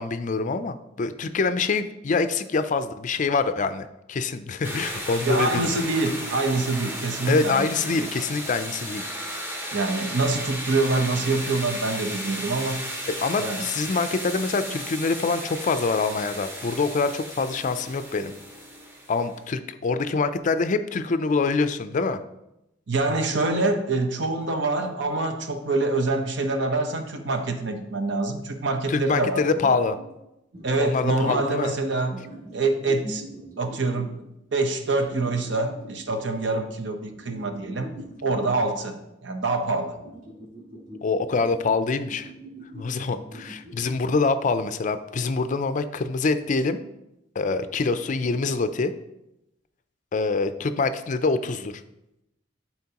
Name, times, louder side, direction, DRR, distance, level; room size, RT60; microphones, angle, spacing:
voice 1, 0.0-5.7 7.3-9.0 13.1-18.3 19.1-22.2 28.9-30.0 30.8-31.8 41.0-42.3 42.7-46.8 47.4-48.9 50.1-51.7, left 4 dB, 40° left, 11 dB, 0.4 m, -25 dB
sound 1, 4.6-19.4, right 1 dB, 10° right, 1.0 m, -35 dB
voice 2, 5.3-8.1 9.7-12.8 13.4-13.6 22.9-29.8 30.6-32.2 32.5-33.2 33.6-37.9 38.2-40.0, right 2 dB, 65° right, 5 dB, 0.9 m, -25 dB
sound 2, 29.9-30.1 30.5-31.5 32.1-34.2 35.1-36.2 37.1-38.9 39.9-43.9, equal, 40° right, 2.5 m, -42 dB
11.5 x 4.4 x 2.9 m, 0.89 s
head